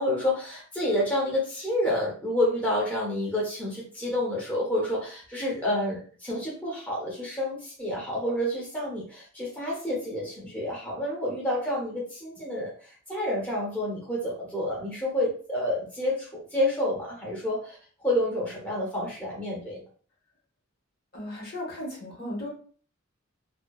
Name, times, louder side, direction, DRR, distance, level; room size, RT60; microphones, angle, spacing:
voice 1, 0.0-12.7 13.1-17.8 18.0-19.8, left 1 dB, 10° left, -4 dB, 0.7 m, -29 dB
voice 2, 21.1-22.5, left 1 dB, 50° left, -2 dB, 0.9 m, -36 dB
2.6 x 2.1 x 2.2 m, 0.43 s
head